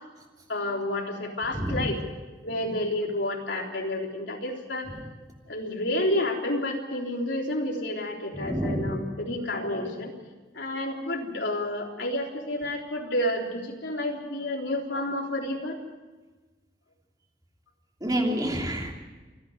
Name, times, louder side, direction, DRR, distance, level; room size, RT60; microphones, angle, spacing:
voice 1, 0.5-2.1 2.4-4.9 5.5-10.1 10.5-15.8, left 1 dB, 80° left, 0 dB, 3.7 m, -30 dB
voice 2, 1.5-1.9 8.3-9.0 18.0-18.9, equal, 20° right, 1 dB, 3.0 m, -28 dB
27.5 x 10.5 x 9.8 m, 1.3 s
head